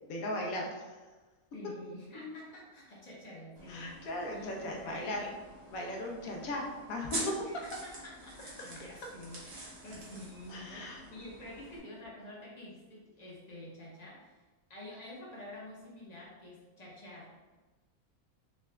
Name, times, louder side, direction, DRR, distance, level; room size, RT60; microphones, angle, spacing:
voice 1, 0.1-1.0 2.1-2.3 3.7-5.3 5.7-7.2 10.5-11.0, left 1 dB, 75° left, 0 dB, 1.2 m, -38 dB
voice 2, 1.5-5.3 6.2-6.4 7.3-14.4 14.7-17.6, left 1 dB, 35° left, -5 dB, 0.9 m, -48 dB
sound 1, 3.6-11.8, right 1 dB, 60° right, 1.3 m, -46 dB
3.9 x 2.3 x 3.3 m, 1.2 s
omnidirectional pair, 1.5 m